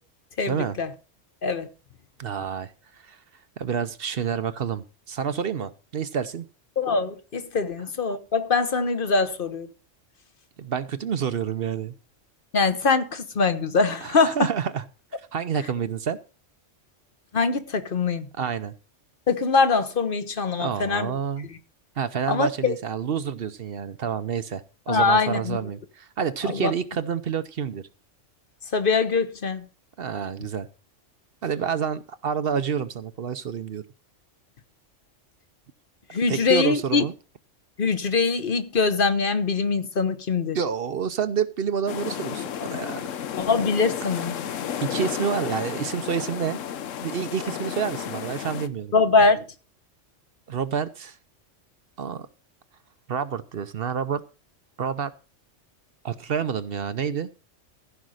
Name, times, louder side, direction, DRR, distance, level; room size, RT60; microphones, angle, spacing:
voice 1, 0.4-0.9 1.4-1.7 6.8-9.7 12.5-14.4 17.3-18.3 19.3-21.1 22.3-22.7 24.9-25.6 26.4-26.7 28.7-29.6 36.1-37.0 37.8-40.6 43.4-44.4 48.9-49.4, left 4 dB, 45° left, 1.2 m, -23 dB
voice 2, 2.2-3.2 3.6-6.4 10.6-11.9 14.0-14.9 15.3-16.2 18.4-18.7 20.6-21.5 22.0-27.8 30.0-30.7 31.4-33.8 36.3-37.1 40.5-43.1 44.0-44.2 44.8-46.6 47.0-48.9 50.5-51.2 52.0-52.3 53.1-54.2 54.8-55.1 56.0-57.3, right 7 dB, 55° right, 0.9 m, -28 dB
sound 1, 41.9-48.7, left 9 dB, 85° left, 1.1 m, -32 dB
15.0 x 5.4 x 6.3 m
omnidirectional pair, 1.3 m